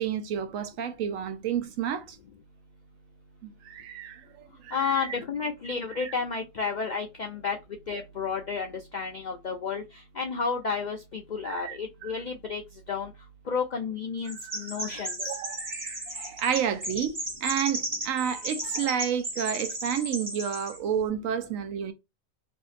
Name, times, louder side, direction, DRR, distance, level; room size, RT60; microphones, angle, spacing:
voice 1, 0.0-2.2 3.4-5.2 6.0-6.1 11.4-12.1 14.4-21.9, right 8 dB, 90° right, 1.0 m, -31 dB
voice 2, 4.7-7.6 7.9-12.6 12.9-13.1 13.5-15.2, left 5 dB, 70° left, 0.4 m, -31 dB
Chirp tweet, 14.3-20.8, right 1 dB, 20° right, 1.0 m, -35 dB
2.7 x 2.6 x 2.4 m
omnidirectional pair, 1.3 m